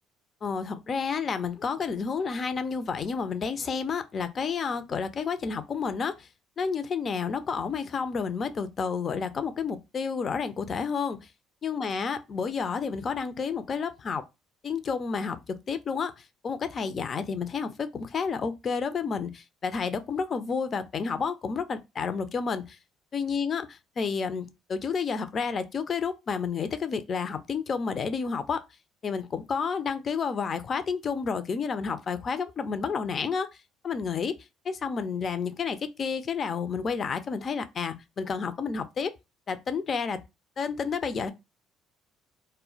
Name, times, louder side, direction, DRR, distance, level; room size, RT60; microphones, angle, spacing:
voice 1, 0.4-6.3 6.6-11.2 11.6-14.2 14.6-22.8 23.1-23.7 24.0-28.6 29.0-33.5 33.8-34.3 34.7-39.1 39.5-40.2 40.6-41.3, left 5 dB, 45° left, 0.4 m, -30 dB
2.1 x 2.1 x 3.7 m
hypercardioid pair, 65°, 0 cm